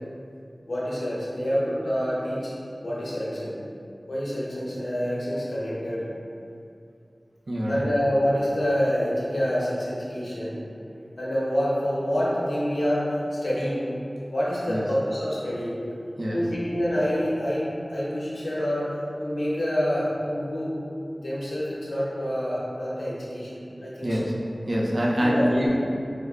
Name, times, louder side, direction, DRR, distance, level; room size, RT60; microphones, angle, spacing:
voice 1, 0.7-2.5 2.8-3.6 4.1-6.0 7.7-10.5 11.2-13.9 14.3-15.8 16.3-18.9 19.2-20.7 21.1-23.5 23.8-24.1 25.2-25.7, equal, 90° left, -8 dB, 0.8 m, -27 dB
voice 2, 7.5-7.9 14.7-14.9 16.2-16.5 24.0-24.3 24.7-25.7, equal, 65° right, -4 dB, 0.5 m, -25 dB
3.2 x 2.2 x 3.5 m, 2.5 s
wide cardioid pair, 65°, 0 cm